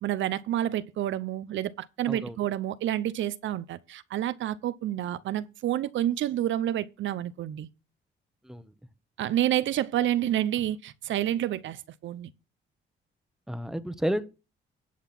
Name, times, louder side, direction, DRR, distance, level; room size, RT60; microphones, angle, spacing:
voice 1, 0.0-7.7 9.2-12.3, right 12 dB, 75° right, 0.7 m, -29 dB
voice 2, 13.5-14.3, equal, ahead, 1.0 m, -31 dB
10.5 x 5.8 x 5.9 m
cardioid pair, 90°, 20 cm